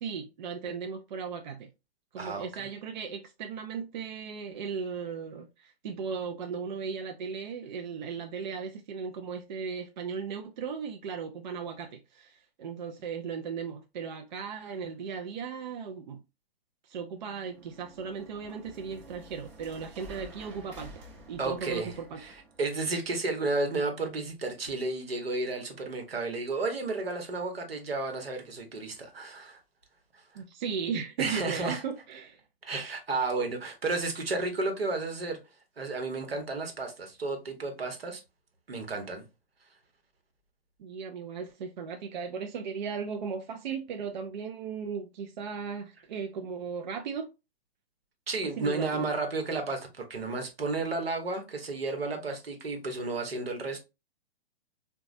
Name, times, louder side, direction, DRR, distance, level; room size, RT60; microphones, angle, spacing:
voice 1, 0.0-1.7 2.1-16.2 16.8-22.2 30.3-32.4 40.8-47.3 48.6-49.1, right 6 dB, 50° right, 0.4 m, -37 dB
voice 2, 2.2-2.7 21.4-21.9 22.2-22.3 22.6-29.6 31.2-31.8 32.6-35.4 35.8-38.2 38.7-39.2 48.3-53.8, right 3 dB, 75° right, 1.0 m, -32 dB
sound 1, 17.2-22.7, right 1 dB, 30° right, 0.8 m, -50 dB
3.8 x 2.3 x 2.5 m
figure-of-eight pair, 120°, 30 cm